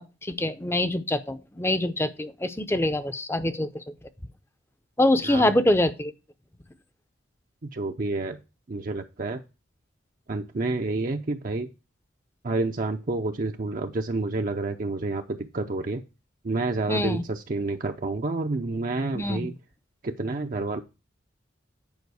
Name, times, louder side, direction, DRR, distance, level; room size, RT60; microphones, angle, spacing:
voice 1, 0.0-3.9 5.0-6.1 16.9-17.2 19.1-19.5, left 1 dB, 10° left, 11 dB, 0.6 m, -25 dB
voice 2, 5.2-5.6 7.6-8.4 8.7-9.4 10.3-11.7 12.4-16.0 16.4-19.5 20.0-20.8, right 3 dB, 45° right, 4 dB, 0.5 m, -29 dB
9.5 x 5.0 x 4.7 m, 0.29 s
head